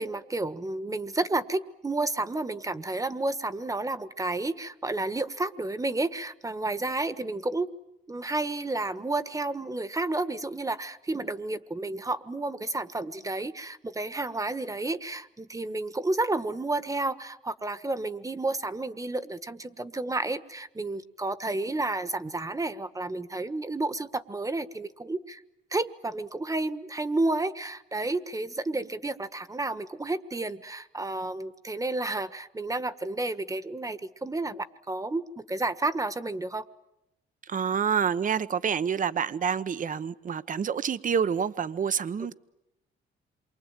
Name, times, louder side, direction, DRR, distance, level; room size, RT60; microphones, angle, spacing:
voice 1, 0.0-7.7 8.1-25.4 25.7-36.6, right 2 dB, 15° right, 1.4 m, -31 dB
voice 2, 37.5-42.3, right 7 dB, 40° right, 1.0 m, -28 dB
27.5 x 24.0 x 9.0 m
cardioid pair, 90°, 20 cm